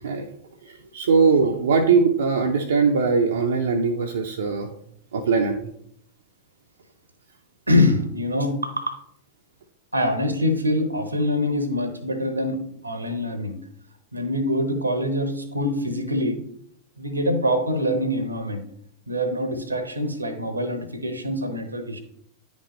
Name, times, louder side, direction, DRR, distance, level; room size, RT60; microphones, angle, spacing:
voice 1, 0.7-4.7 5.1-5.7, right 5 dB, 65° right, 3 dB, 0.6 m, -21 dB
voice 2, 7.7-9.0 9.9-13.5 14.1-16.4 17.0-18.6 19.1-22.0, left 1 dB, 80° right, 9 dB, 0.9 m, -24 dB
9.9 x 5.2 x 3.1 m, 0.71 s
figure-of-eight pair, 90°, 0 cm